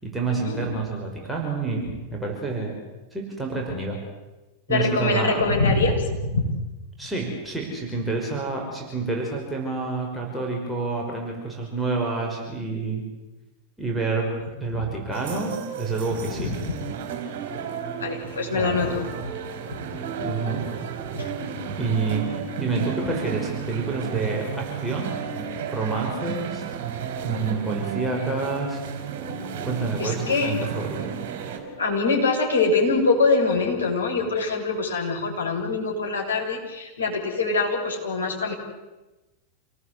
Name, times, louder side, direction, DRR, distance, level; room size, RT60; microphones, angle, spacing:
voice 1, 0.0-2.7 3.1-4.0 4.7-5.4 7.0-13.0 13.8-14.3 14.6-16.5 18.5-19.0 20.2-20.6 21.8-25.1 25.7-26.6 27.2-28.8 29.6-31.1, right 3 dB, 5° right, -2 dB, 5.9 m, -28 dB
voice 2, 4.7-6.5 14.7-14.8 16.1-16.7 18.0-19.1 19.6-19.8 20.2-20.3 21.1-21.3 30.0-30.5 31.4-38.5, left 3 dB, 70° left, -2 dB, 6.7 m, -24 dB
sound 1, 15.1-31.6, right 7 dB, 50° right, 4.5 m, -33 dB
28.0 x 18.5 x 8.2 m, 1.1 s
figure-of-eight pair, 90°, 0 cm